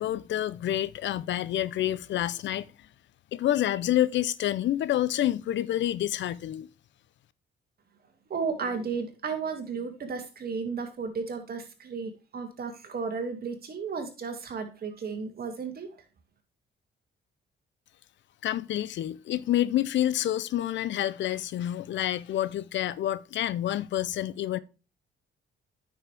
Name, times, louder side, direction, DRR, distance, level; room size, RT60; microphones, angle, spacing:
voice 1, 0.0-2.7 3.3-6.7 18.4-24.6, left 12 dB, 70° left, 0.6 m, -28 dB
voice 2, 8.3-15.9, right 5 dB, 50° right, 2.4 m, -34 dB
9.4 x 6.4 x 3.4 m
cardioid pair, 90°, 20 cm